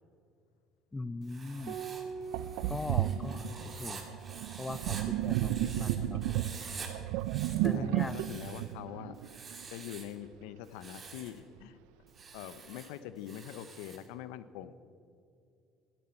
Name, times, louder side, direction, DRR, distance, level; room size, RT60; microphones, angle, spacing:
voice 1, 0.9-1.8 2.7-4.0 4.6-6.2 7.6-8.2, left 3 dB, 15° left, 16 dB, 0.4 m, -40 dB
Writing, 1.2-6.0 6.2-6.9 7.2-8.7 9.2-10.1 10.6-11.4 12.1-14.1, right 5 dB, 30° right, 1.7 m, -48 dB
Sink (filling or washing), 1.6-1.7 2.3-9.6, right 13 dB, 85° right, 0.3 m, -33 dB
Piano, 1.7-6.5 8.2-9.0, right 6 dB, 65° right, 1.0 m, -47 dB
voice 2, 7.7-9.2 9.7-11.8 12.3-14.8, left 11 dB, 85° left, 14 dB, 0.5 m, -44 dB
13.5 x 10.5 x 4.3 m, 2.5 s
cardioid pair, 105°, 0 cm